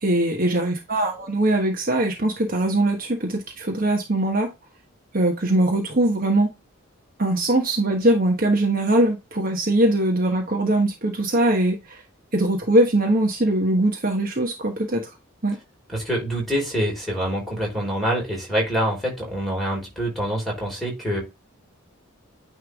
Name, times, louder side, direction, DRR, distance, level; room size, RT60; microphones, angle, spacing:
voice 1, 0.0-4.5 5.1-6.5 7.2-12.0 12.3-15.1 15.4-15.6, right 1 dB, 40° right, 1.2 m, -21 dB
voice 2, 15.9-21.2, equal, ahead, 4.2 m, -25 dB
9.5 x 3.4 x 3.6 m
head